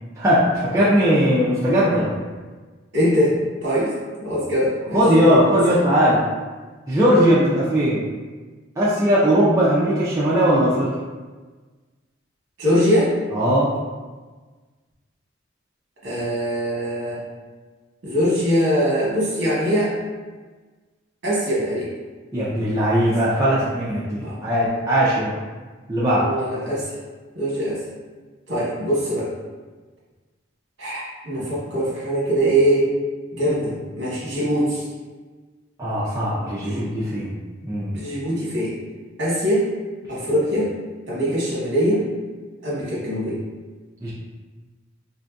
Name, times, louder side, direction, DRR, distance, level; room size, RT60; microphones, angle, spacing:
voice 1, 0.2-2.2 4.9-6.2 6.9-8.1 8.8-10.9 13.3-13.7 22.3-25.3 25.9-26.3 35.8-37.4 37.7-37.9 44.0-44.1, equal, 15° right, -9 dB, 0.4 m, -19 dB
voice 2, 2.9-3.4 3.6-3.9 4.2-5.8 7.3-7.5 12.6-13.1 16.0-17.2 18.0-19.9 21.2-21.9 23.0-23.1 24.2-24.4 26.2-26.9 27.3-27.8 28.5-29.3 30.8-32.9 33.3-34.8 36.6-36.9 37.9-38.8 39.2-39.7 40.1-40.7 41.1-42.1 42.6-43.4, equal, 65° right, -7 dB, 1.1 m, -22 dB
3.4 x 2.6 x 2.2 m, 1.3 s
head